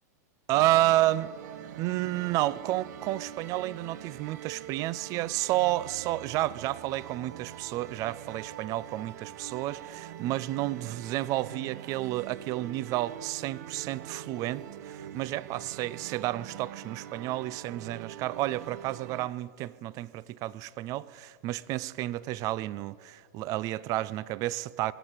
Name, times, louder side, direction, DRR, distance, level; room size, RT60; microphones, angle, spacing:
voice 1, 0.5-1.3 1.8-24.9, right 16 dB, 35° right, 0.4 m, -31 dB
sound 1, 0.5-19.3, right 11 dB, 65° right, 0.8 m, -44 dB
22.0 x 8.1 x 7.5 m
hypercardioid pair, 125°, 10 cm